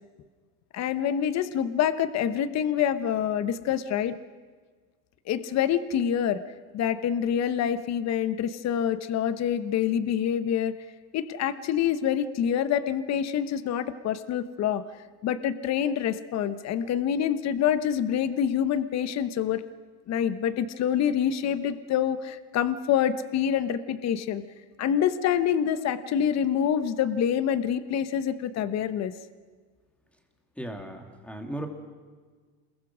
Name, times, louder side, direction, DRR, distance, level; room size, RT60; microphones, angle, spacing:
voice 1, 0.7-4.1 5.3-6.4 6.7-10.7 11.1-14.8 15.2-19.6 20.1-24.4 24.8-29.1, left 9 dB, 35° left, 13 dB, 1.1 m, -26 dB
voice 2, 30.6-31.7, right 1 dB, 5° left, 4 dB, 2.8 m, -36 dB
27.5 x 22.0 x 6.2 m, 1.5 s
supercardioid pair, 135°, 45 cm